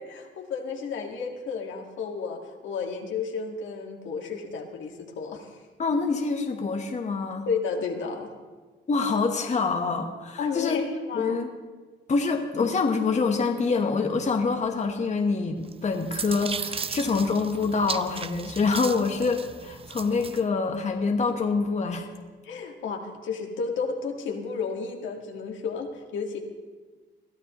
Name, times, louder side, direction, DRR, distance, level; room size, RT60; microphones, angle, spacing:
voice 1, 0.0-5.6 7.5-8.3 10.4-11.4 22.4-26.4, left 5 dB, 75° left, 2 dB, 1.9 m, -32 dB
voice 2, 5.8-7.5 8.9-10.8 11.1-11.5 12.1-22.1, left 4 dB, 35° left, 4 dB, 1.2 m, -26 dB
sound 1, 15.7-20.4, right 5 dB, 30° right, 0.5 m, -36 dB
21.5 x 13.0 x 3.1 m, 1.4 s
cardioid pair, 90°, 20 cm